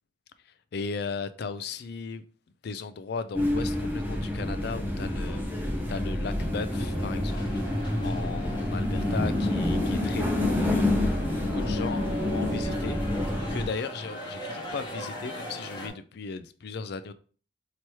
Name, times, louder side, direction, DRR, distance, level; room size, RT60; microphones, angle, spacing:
voice 1, 0.4-2.2 2.6-17.1, left 4 dB, 55° left, 0.4 m, -37 dB
sound 1, 3.3-13.7, left 1 dB, 10° right, 0.7 m, -28 dB
sound 2, 6.7-15.9, equal, 25° left, 1.1 m, -41 dB
3.1 x 2.9 x 4.5 m
head